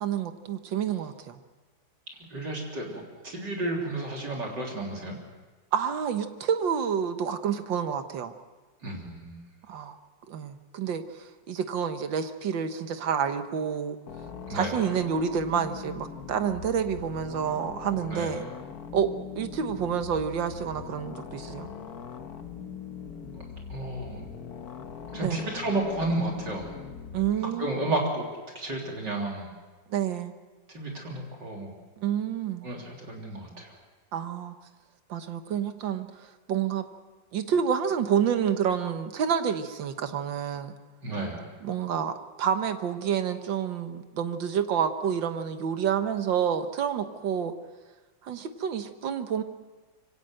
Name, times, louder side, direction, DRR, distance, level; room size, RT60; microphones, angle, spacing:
voice 1, 0.0-1.4 5.7-8.3 9.7-10.0 10.3-14.0 14.5-18.5 18.9-21.7 23.9-24.0 25.2-25.5 27.1-27.8 29.9-30.3 32.0-32.7 34.1-34.5 35.1-36.1 36.5-36.8 37.3-40.8 41.6-47.5 48.2-49.4, right 8 dB, 85° right, 8 dB, 2.0 m, -29 dB
voice 2, 2.3-5.2 8.8-9.4 14.4-14.8 18.1-18.3 23.4-23.5 23.7-24.2 25.1-26.7 27.6-28.3 28.6-29.5 30.7-31.7 32.6-33.8 41.0-41.5, right 2 dB, 70° right, -1 dB, 4.2 m, -32 dB
sound 1, 14.1-27.3, left 6 dB, 60° left, 1.6 m, -41 dB
24.5 x 17.5 x 7.7 m, 1.3 s
omnidirectional pair, 2.0 m